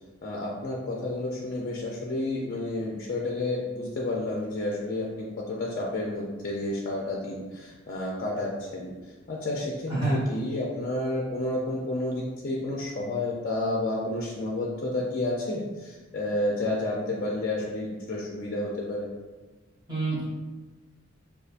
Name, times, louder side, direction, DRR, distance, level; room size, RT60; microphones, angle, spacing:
voice 1, 0.2-8.9 9.3-19.1, left 2 dB, 40° left, -3 dB, 0.4 m, -30 dB
voice 2, 9.9-10.2 19.9-20.2, right 2 dB, 20° right, -10 dB, 1.4 m, -27 dB
5.2 x 2.4 x 2.4 m, 1.3 s
head